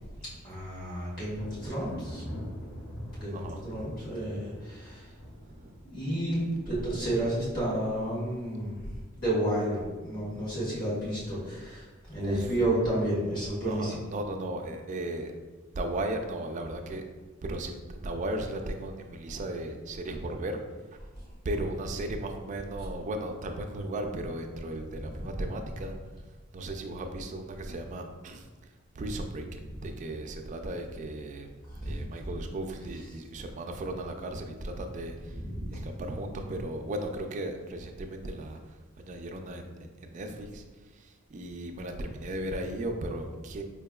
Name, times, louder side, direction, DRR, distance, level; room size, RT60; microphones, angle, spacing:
voice 1, 0.4-2.2 3.2-5.0 5.8-8.8 9.2-14.0 31.7-32.3 35.3-35.9, right 1 dB, 45° left, -9 dB, 1.4 m, -31 dB
Thunder, 1.3-7.8 8.1-8.7 9.1-10.0, equal, 60° left, 1.1 m, -44 dB
voice 2, 3.3-3.7 5.4-5.8 12.2-12.6 13.7-15.3 15.8-17.0 17.4-20.6 21.4-25.9 26.5-28.5 29.0-29.4 29.8-31.5 31.8-35.4 35.7-38.6 39.0-40.7 40.9-43.6, right 1 dB, 35° right, 4 dB, 0.3 m, -36 dB
4.5 x 2.8 x 2.3 m, 1.3 s
head